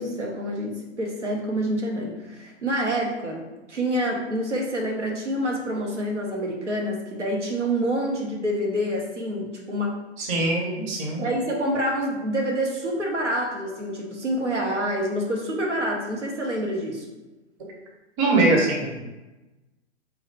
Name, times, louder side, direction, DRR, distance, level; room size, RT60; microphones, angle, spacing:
voice 1, 0.0-3.4 3.7-10.0 11.2-17.1, equal, 80° right, -1 dB, 1.1 m, -27 dB
voice 2, 10.2-11.2 18.2-19.0, right 2 dB, 30° right, -1 dB, 0.9 m, -22 dB
3.8 x 2.7 x 4.6 m, 1.1 s
figure-of-eight pair, 115°, 35 cm